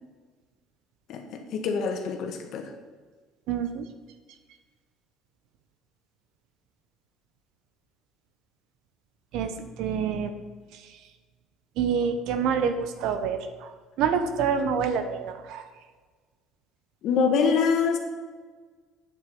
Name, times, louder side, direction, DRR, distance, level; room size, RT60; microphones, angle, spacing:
voice 1, 1.1-2.7 17.0-18.0, left 5 dB, 60° left, 4 dB, 1.7 m, -25 dB
voice 2, 3.5-3.8 9.3-9.5 9.8-10.3 11.8-13.4 14.0-15.6, right 6 dB, 70° right, 8 dB, 1.2 m, -26 dB
8.9 x 7.9 x 5.5 m, 1.5 s
cardioid pair, 115°, 0 cm